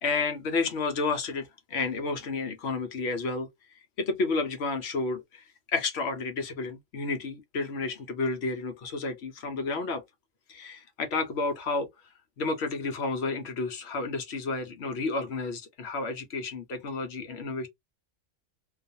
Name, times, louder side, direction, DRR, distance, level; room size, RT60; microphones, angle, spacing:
voice 1, 0.0-10.0 10.5-11.9 12.4-17.7, left 3 dB, 60° left, 0.9 m, -31 dB
2.5 x 2.4 x 2.6 m
omnidirectional pair, 1.4 m